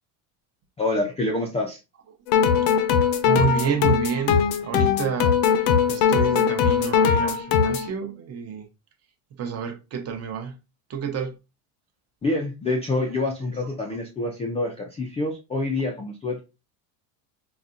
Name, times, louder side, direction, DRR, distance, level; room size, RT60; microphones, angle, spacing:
voice 1, 0.8-1.8 12.2-16.4, left 2 dB, 15° left, 0.3 m, -26 dB
sound 1, 2.3-7.9, left 7 dB, 75° left, 0.7 m, -20 dB
voice 2, 3.2-8.7 9.4-10.6 10.9-11.4 13.0-13.1 13.8-14.0, right 6 dB, 35° right, 0.7 m, -29 dB
4.1 x 2.2 x 2.5 m
cardioid pair, 135°, 47 cm